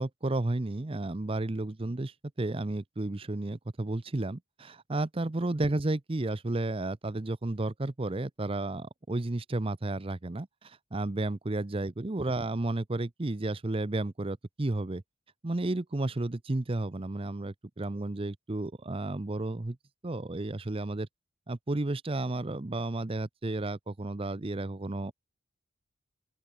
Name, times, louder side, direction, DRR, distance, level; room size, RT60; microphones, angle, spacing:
voice 1, 0.0-15.0 15.4-19.8 20.0-21.1 21.5-25.1, right 2 dB, 25° right, 0.6 m, -32 dB
open air
head